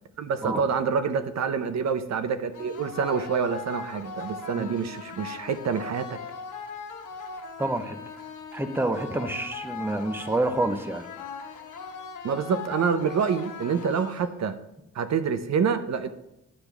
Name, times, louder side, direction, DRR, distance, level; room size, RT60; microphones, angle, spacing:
voice 1, 0.2-6.2 12.2-14.6 14.9-16.1, right 6 dB, 60° right, 11 dB, 0.6 m, -27 dB
sound 1, 2.5-14.5, left 5 dB, 85° left, 1.1 m, -39 dB
voice 2, 7.6-8.0 8.5-11.1, right 2 dB, 5° right, 9 dB, 0.6 m, -28 dB
9.9 x 3.4 x 6.0 m, 0.88 s
cardioid pair, 105°, 31 cm